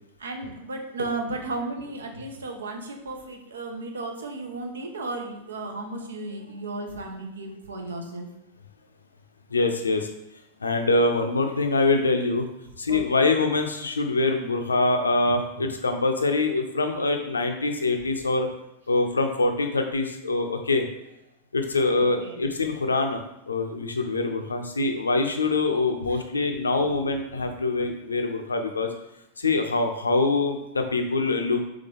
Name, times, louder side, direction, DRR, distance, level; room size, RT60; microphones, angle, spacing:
voice 1, 0.2-8.3 12.9-13.3 15.3-15.7 18.2-18.3 22.0-22.4 26.1-26.2 27.8-27.9, right 2 dB, 70° right, 3 dB, 0.6 m, -34 dB
voice 2, 9.5-10.1 10.6-12.5 12.8-18.5 18.9-20.8 21.5-28.9 29.4-31.7, left 3 dB, 75° left, 6 dB, 0.5 m, -24 dB
3.7 x 3.4 x 3.3 m, 0.83 s
figure-of-eight pair, 90°, 0 cm